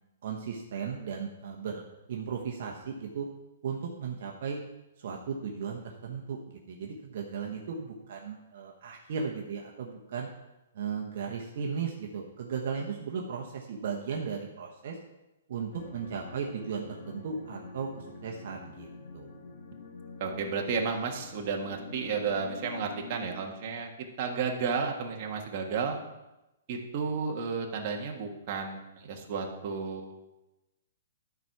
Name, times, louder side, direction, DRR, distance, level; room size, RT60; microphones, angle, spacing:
voice 1, 0.2-1.8 2.1-3.3 3.6-4.6 5.0-10.3 10.7-15.0 15.5-18.9 19.1-19.3, right 6 dB, 50° right, 0 dB, 1.0 m, -36 dB
sound 1, 15.7-23.5, left 4 dB, 55° left, 1.4 m, -46 dB
voice 2, 20.2-23.9 24.2-26.0 26.7-30.1, right 5 dB, 35° right, 1 dB, 1.4 m, -32 dB
12.0 x 4.7 x 5.8 m, 0.98 s
hypercardioid pair, 165°, 0 cm